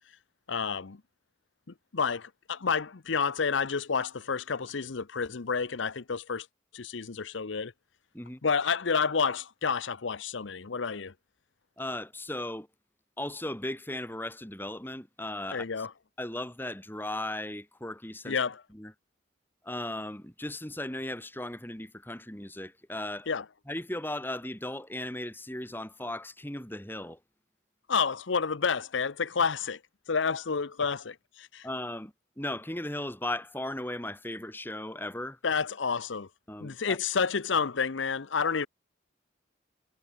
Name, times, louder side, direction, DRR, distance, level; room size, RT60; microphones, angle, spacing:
voice 1, 0.5-1.0 1.9-6.5 6.7-7.7 8.4-11.1 15.5-15.9 18.3-18.6 23.3-23.4 27.9-29.8 30.1-31.7 35.4-36.3 36.6-38.7, left 5 dB, 80° left, 0.8 m, -29 dB
voice 2, 11.8-12.7 13.2-15.9 16.2-18.4 18.7-18.9 19.6-23.3 23.7-27.2 31.6-35.4 36.5-37.0, left 1 dB, 10° left, 2.9 m, -37 dB
head